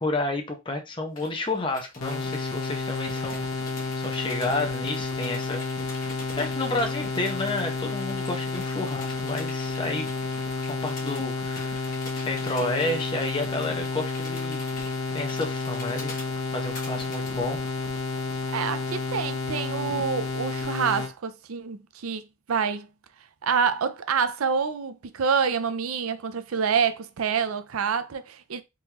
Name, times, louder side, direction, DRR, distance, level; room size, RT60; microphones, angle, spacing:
voice 1, 0.0-3.4 4.0-5.7 6.0-10.0 10.8-14.6 15.1-16.2 16.5-17.6, left 2 dB, 25° left, 0.8 m, -31 dB
sound 1, 1.2-17.3, left 3 dB, 40° left, 1.3 m, -44 dB
sound 2, 2.0-21.1, left 3 dB, 90° left, 0.9 m, -31 dB
voice 2, 18.5-22.2 22.5-22.9 23.4-28.6, right 6 dB, 90° right, 0.5 m, -27 dB
3.7 x 3.0 x 2.9 m
head